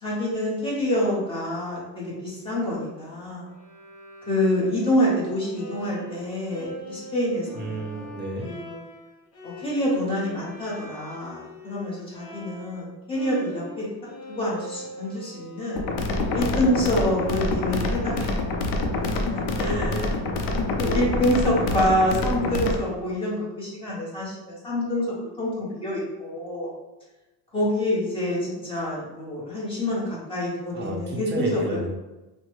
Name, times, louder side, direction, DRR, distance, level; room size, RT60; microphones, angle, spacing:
voice 1, 0.0-3.5 4.3-8.1 8.4-8.8 9.4-13.9 14.3-15.8 16.3-20.0 20.8-26.7 27.5-31.8, left 1 dB, 15° left, -7 dB, 1.0 m, -27 dB
Bowed string instrument, 3.5-12.9 13.1-18.9, equal, 35° left, 0.7 m, -43 dB
voice 2, 7.5-8.5 19.5-20.3 30.7-31.9, right 2 dB, 30° right, -1 dB, 0.5 m, -31 dB
sound 1, 15.8-22.8, left 2 dB, 75° left, 0.6 m, -26 dB
3.0 x 2.1 x 3.0 m, 1.1 s
cardioid pair, 150°, 41 cm